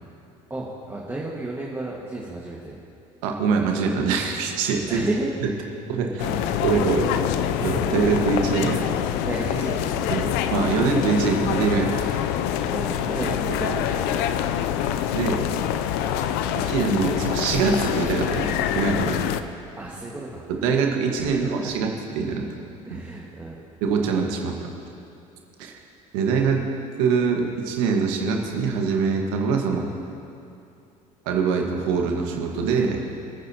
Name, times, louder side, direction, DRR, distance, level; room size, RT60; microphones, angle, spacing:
voice 1, 0.5-2.8 4.9-5.3 9.1-10.3 12.7-14.1 19.8-20.5 21.1-21.8 22.9-23.6, right 2 dB, 15° right, -4 dB, 1.8 m, -32 dB
voice 2, 3.2-5.0 5.4-5.5 5.9-6.3 6.6-7.1 7.6-8.8 10.1-12.2 13.5-13.6 15.1-15.4 16.5-19.2 20.5-21.9 22.1-22.5 22.9-23.0 23.8-24.6 25.6-25.7 26.1-26.7 27.0-29.9 31.2-33.0, right 5 dB, 75° right, 2 dB, 1.7 m, -23 dB
sound 1, 6.2-19.4, left 10 dB, 70° left, 0.6 m, -25 dB
25.0 x 9.4 x 3.0 m, 2.6 s
hypercardioid pair, 70°, 17 cm